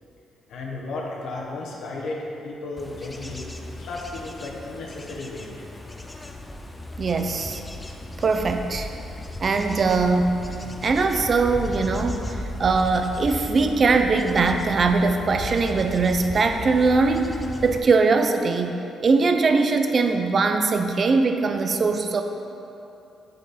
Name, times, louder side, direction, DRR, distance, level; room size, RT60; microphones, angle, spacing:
voice 1, 0.5-3.5 3.8-5.7, left 2 dB, 70° left, -2 dB, 1.3 m, -34 dB
Bird / Insect / Wind, 2.8-17.8, left 1 dB, 15° left, 0.6 m, -35 dB
voice 2, 7.0-7.6 8.2-8.9 9.4-10.4 10.8-17.3 17.6-18.8 19.0-22.2, right 4 dB, 45° right, 6 dB, 0.6 m, -21 dB
8.0 x 5.3 x 4.2 m, 2.8 s
cardioid pair, 90°, 0 cm